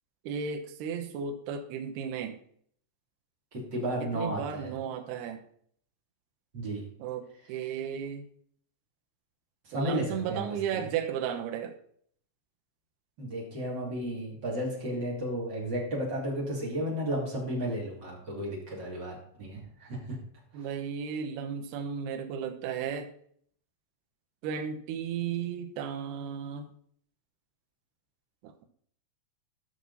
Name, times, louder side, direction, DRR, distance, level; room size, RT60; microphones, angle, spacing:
voice 1, 0.2-2.4 4.0-5.4 7.0-8.3 9.7-11.8 20.5-23.1 24.4-26.7 28.4-28.6, right 7 dB, 85° right, 4 dB, 2.3 m, -34 dB
voice 2, 3.7-4.7 6.5-6.8 9.7-10.8 13.2-20.2, equal, 30° right, -4 dB, 2.4 m, -33 dB
13.0 x 6.3 x 4.1 m, 0.62 s
omnidirectional pair, 6.0 m